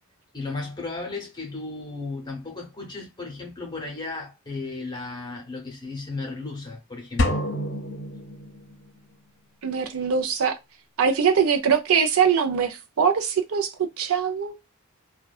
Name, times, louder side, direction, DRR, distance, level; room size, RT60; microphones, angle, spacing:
voice 1, 0.3-7.4, left 3 dB, 20° left, 0.7 m, -35 dB
sound 1, 7.2-9.0, left 1 dB, 55° left, 0.6 m, -27 dB
voice 2, 9.6-10.6 11.0-14.6, right 6 dB, 70° right, 0.5 m, -22 dB
2.6 x 2.2 x 2.2 m
head